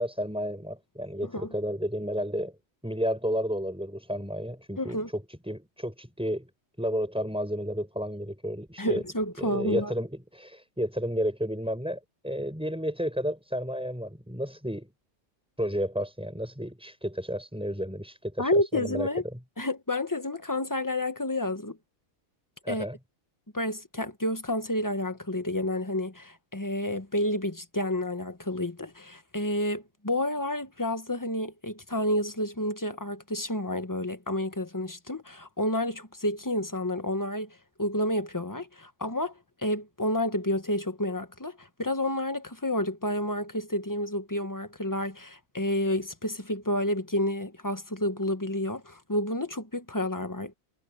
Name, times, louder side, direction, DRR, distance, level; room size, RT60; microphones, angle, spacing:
voice 1, 0.0-2.6 2.8-6.5 6.8-9.0 9.4-14.9 15.6-19.1 22.6-23.0, equal, 5° right, 5.7 m, -32 dB
voice 2, 4.8-5.1 8.8-9.9 18.4-19.2 19.6-21.8 22.7-22.8 23.5-39.3 39.6-50.5, left 1 dB, 15° left, 1.1 m, -30 dB
omnidirectional pair, 1.5 m